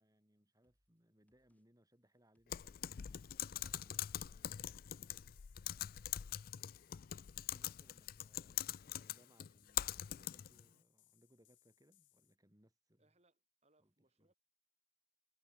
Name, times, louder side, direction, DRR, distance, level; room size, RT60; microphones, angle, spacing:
voice 1, 0.0-3.2 3.6-4.0 7.5-13.1 13.8-14.3, equal, 20° right, 6.8 m, -72 dB
sound 1, 0.6-1.0 1.3-1.6 1.9-4.4 4.7-5.1 5.4-7.4, equal, 10° left, 7.4 m, -82 dB
Typing, 2.5-10.6, left 12 dB, 50° left, 0.4 m, -43 dB
voice 2, 3.1-4.5 13.0-14.3, right 2 dB, 35° right, 6.4 m, -77 dB
sound 2, 4.1-12.3, left 16 dB, 75° left, 2.3 m, -74 dB
head